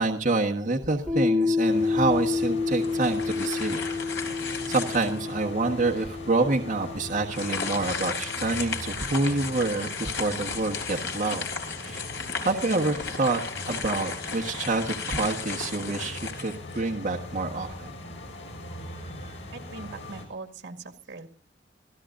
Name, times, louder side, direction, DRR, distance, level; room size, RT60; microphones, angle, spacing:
voice 1, 0.0-3.8 4.5-11.5 11.8-12.1 12.4-13.4 13.7-17.9, right 3 dB, 45° right, 1 dB, 1.4 m, -27 dB
Piano, 1.1-8.3, left 4 dB, 5° right, 4.1 m, -29 dB
sound 1, 1.7-20.3, left 1 dB, 85° left, 5.9 m, -41 dB
sound 2, 2.8-5.3 5.9-6.0 7.3-17.1, left 5 dB, 70° left, 3.7 m, -35 dB
voice 2, 19.5-21.3, right 3 dB, 75° right, 6 dB, 2.0 m, -41 dB
27.0 x 16.0 x 2.6 m, 0.42 s
head